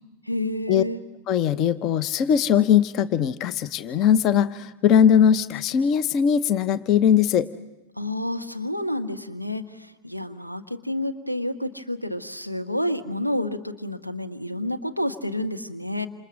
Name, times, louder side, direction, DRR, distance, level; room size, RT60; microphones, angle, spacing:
voice 1, 0.2-1.0 8.0-16.1, left 1 dB, 90° left, 9 dB, 1.2 m, -29 dB
voice 2, 1.3-7.5, left 8 dB, 35° left, 15 dB, 0.8 m, -20 dB
28.0 x 27.5 x 6.3 m, 1.0 s
figure-of-eight pair, 90°, 0 cm